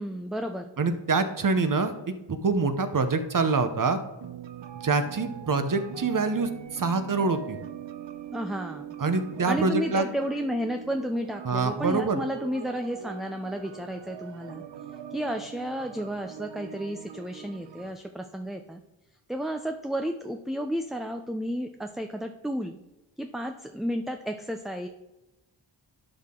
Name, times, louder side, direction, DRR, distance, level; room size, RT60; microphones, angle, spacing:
voice 1, 0.0-0.7 8.3-8.9 9.5-14.6 15.1-18.8 19.3-22.8 23.2-24.9, equal, ahead, 5 dB, 0.4 m, -32 dB
voice 2, 0.8-4.0 4.8-7.6 9.0-10.1 11.4-12.2, right 4 dB, 45° right, 9 dB, 0.9 m, -25 dB
sound 1, 4.2-17.9, right 9 dB, 75° right, 0.7 m, -42 dB
11.5 x 5.9 x 3.7 m, 0.99 s
wide cardioid pair, 105°, 45 cm